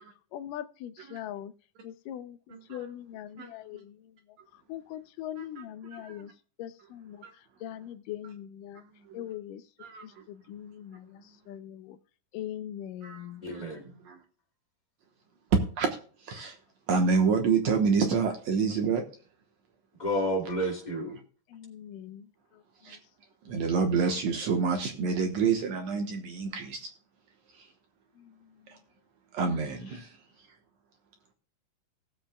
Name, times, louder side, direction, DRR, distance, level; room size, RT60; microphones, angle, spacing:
voice 1, 0.3-1.5 1.8-2.4 2.7-4.0 4.7-6.3 6.6-7.2 7.6-8.8 9.1-9.6 10.0-12.0 12.3-13.4 21.5-22.3, left 11 dB, 80° left, 2.1 m, -41 dB
voice 2, 2.5-2.9 3.4-3.5 5.4-5.7 5.9-6.3 7.2-7.3 9.1-9.3 9.8-10.2 13.0-14.2 15.8-16.0 16.2-16.6 16.9-19.0 22.8-23.0 23.5-26.9 27.5-27.7 28.7-28.8 29.3-30.2, right 5 dB, 65° right, 2.0 m, -28 dB
voice 3, 13.4-13.9 20.0-21.2, equal, 15° left, 2.3 m, -30 dB
18.0 x 7.6 x 2.2 m
omnidirectional pair, 3.9 m